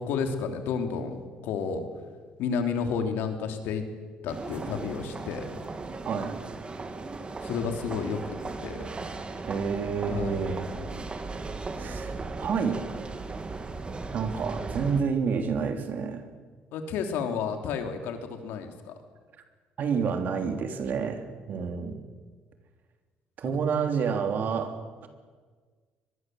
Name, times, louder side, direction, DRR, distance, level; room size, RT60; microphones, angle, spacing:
voice 1, 0.0-1.8 2.4-3.8 4.2-5.5 7.4-8.4 8.6-8.9 10.1-10.4 16.7-18.9, left 6 dB, 80° left, 5 dB, 3.2 m, -31 dB
sound 1, 4.3-15.0, right 3 dB, 30° right, 2.5 m, -37 dB
voice 2, 9.4-10.7 11.8-12.8 14.1-16.3 19.8-22.0 23.4-25.1, right 6 dB, 60° right, 6 dB, 3.4 m, -29 dB
23.5 x 21.5 x 7.9 m, 1.5 s
supercardioid pair, 80°, 3 cm